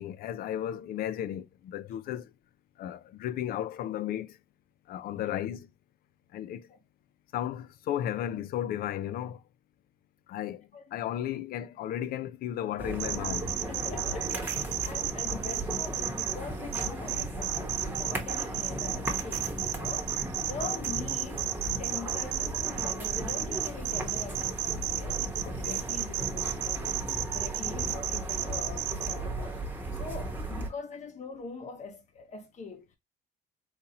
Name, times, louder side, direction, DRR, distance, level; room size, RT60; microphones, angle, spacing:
voice 1, 0.0-2.3 2.8-4.4 4.9-5.7 6.3-6.7 7.3-9.4 10.3-13.5 25.4-25.8, left 11 dB, 60° left, 0.5 m, -34 dB
sound 1, 12.8-30.7, right 1 dB, 10° right, 1.0 m, -36 dB
sound 2, 13.0-16.3 16.7-29.2, right 14 dB, 80° right, 0.4 m, -32 dB
voice 2, 13.7-21.5 21.8-27.0 27.3-33.0, left 4 dB, 45° left, 1.2 m, -43 dB
3.9 x 2.8 x 2.8 m
cardioid pair, 110°, 17 cm